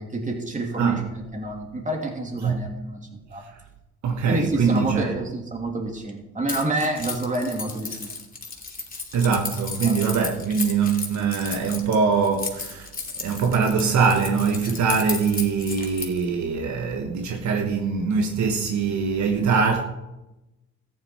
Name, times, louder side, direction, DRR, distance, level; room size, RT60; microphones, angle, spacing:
voice 1, 0.0-3.5 4.3-8.1 9.8-10.0, right 2 dB, 25° right, 3.0 m, -28 dB
voice 2, 0.8-1.1 2.4-2.7 3.4-3.6 4.0-5.2 9.1-19.8, right 5 dB, 65° right, 1.4 m, -23 dB
Keys jangling, 6.5-16.2, left 4 dB, 30° left, 2.6 m, -34 dB
14.0 x 10.0 x 4.5 m
cardioid pair, 90°, 30 cm